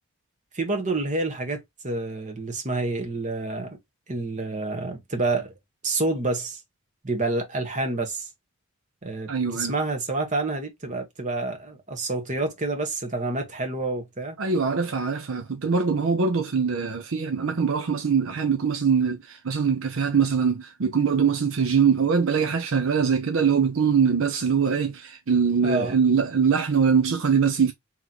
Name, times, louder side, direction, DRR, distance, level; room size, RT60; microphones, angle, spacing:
voice 1, 0.5-3.8 4.1-5.5 5.8-6.6 7.0-8.3 9.0-9.3 9.5-14.4 25.6-26.0, right 2 dB, 35° right, 1.2 m, -28 dB
voice 2, 9.3-9.7 14.4-27.7, right 6 dB, 65° right, 0.6 m, -23 dB
3.0 x 2.9 x 3.8 m
head